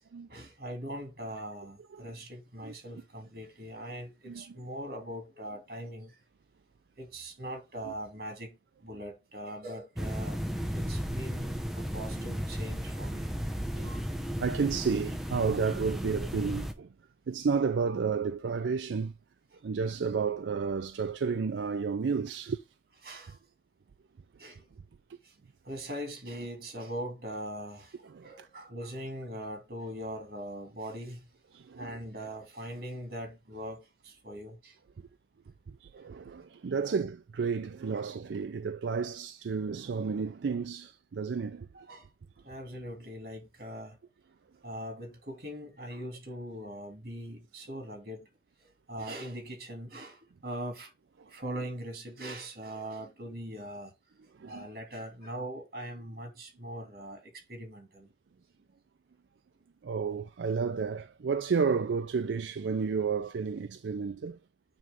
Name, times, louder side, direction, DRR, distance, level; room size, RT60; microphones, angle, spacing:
voice 1, 0.3-6.2 7.0-10.4 10.7-13.3 23.0-23.4 24.4-24.7 25.2-25.4 25.6-31.2 31.8-34.8 36.0-36.1 36.8-36.9 37.9-38.0 41.7-42.1 42.4-44.0 44.6-48.3 48.6-50.9 51.3-53.9 54.4-58.1 63.2-63.3, equal, 55° right, 2.6 m, -41 dB
voice 2, 4.3-4.6 7.8-7.9 13.0-13.1 13.7-14.0 14.4-16.9 17.3-19.1 19.6-22.6 28.0-28.5 31.5-32.0 35.7-41.7 51.2-51.3 54.3-54.7 59.8-64.4, right 5 dB, 90° right, 0.4 m, -32 dB
sound 1, 10.0-16.7, equal, ahead, 0.6 m, -34 dB
9.3 x 3.2 x 3.6 m
head